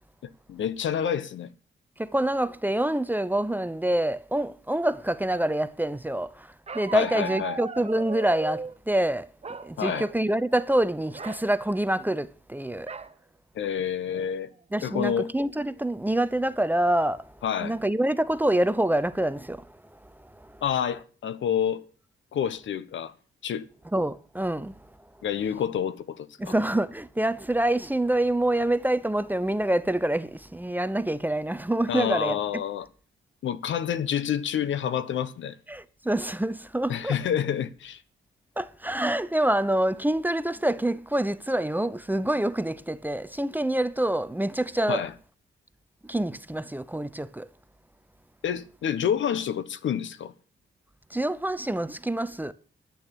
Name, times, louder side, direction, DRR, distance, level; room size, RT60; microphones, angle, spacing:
voice 1, 0.2-1.5 6.9-7.6 9.8-10.1 13.5-14.5 14.8-15.3 17.4-17.8 20.6-21.8 22.3-23.1 23.4-23.7 25.2-26.5 31.9-32.9 33.4-35.5 36.9-38.0 44.9-45.1 48.4-50.3, left 9 dB, 70° left, 1.0 m, -28 dB
voice 2, 2.0-6.5 6.7-9.3 9.6-12.9 14.7-17.3 17.6-19.6 23.9-24.7 26.4-32.4 35.7-37.2 38.6-45.0 46.1-47.5 51.1-52.5, right 1 dB, 10° right, 0.7 m, -26 dB
Bark, 6.7-8.8 9.4-10.2 10.5-10.7 11.1-11.4 12.9-13.1 13.7-13.8 14.1-14.5, right 4 dB, 30° right, 1.0 m, -37 dB
11.0 x 7.0 x 8.5 m
cardioid pair, 85°, 20 cm